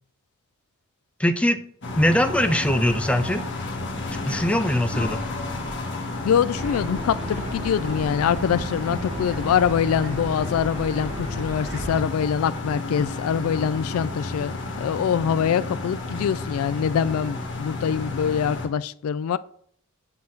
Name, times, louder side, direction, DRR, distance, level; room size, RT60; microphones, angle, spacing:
voice 1, 1.2-1.6 1.9-3.4 4.3-5.3, left 1 dB, 5° left, 8 dB, 0.5 m, -21 dB
sound 1, 1.8-18.7, left 2 dB, 60° left, 1.3 m, -32 dB
voice 2, 6.2-19.4, left 8 dB, 75° left, 18 dB, 0.3 m, -24 dB
sound 2, 6.6-12.0, equal, 60° right, 1.9 m, -35 dB
7.5 x 3.9 x 5.7 m, 0.63 s
head